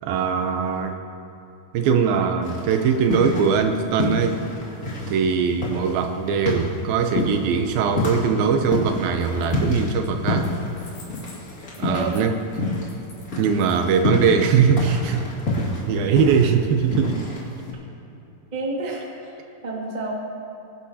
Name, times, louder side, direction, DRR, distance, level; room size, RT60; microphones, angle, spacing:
voice 1, 0.0-1.0 1.7-4.4 5.1-10.5 11.8-12.7 13.4-15.2 15.7-17.3, right 6 dB, 75° right, 6 dB, 2.4 m, -21 dB
sound 1, 2.4-3.7 4.0-13.0 13.2-17.7, left 2 dB, 30° left, 1.9 m, -28 dB
sound 2, 9.2-9.7 10.0-14.3, left 3 dB, 80° left, 5.2 m, -49 dB
voice 2, 11.8-12.1 18.5-19.4 19.6-20.1, right 2 dB, 25° right, -3 dB, 0.9 m, -30 dB
21.5 x 12.0 x 2.8 m, 2.9 s
omnidirectional pair, 4.5 m